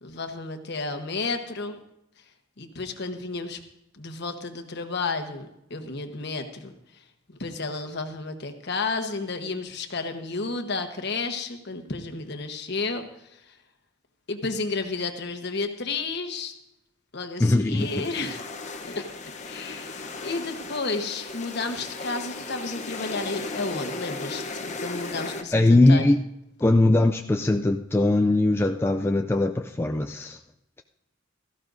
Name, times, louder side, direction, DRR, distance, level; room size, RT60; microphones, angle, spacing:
voice 1, 0.0-1.8 2.6-3.6 3.9-7.0 7.3-13.6 14.3-16.5 17.1-18.4 18.8-19.1 19.4-26.1, left 3 dB, 55° left, 6 dB, 1.2 m, -32 dB
voice 2, 17.4-18.1 25.5-26.2 26.6-30.4, left 2 dB, 10° left, 5 dB, 0.3 m, -20 dB
sound 1, 17.8-25.4, left 3 dB, 35° left, 0.9 m, -36 dB
17.0 x 14.0 x 2.6 m, 0.82 s
head